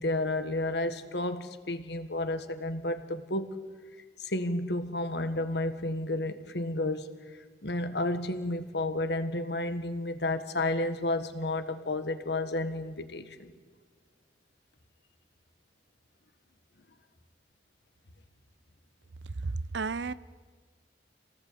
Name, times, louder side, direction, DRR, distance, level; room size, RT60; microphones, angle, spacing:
voice 1, 0.0-3.6 4.2-7.1 7.6-13.5, left 2 dB, 70° left, 9 dB, 1.6 m, -31 dB
voice 2, 19.2-20.1, right 4 dB, 85° right, 17 dB, 0.7 m, -33 dB
27.0 x 18.5 x 8.6 m, 1.5 s
head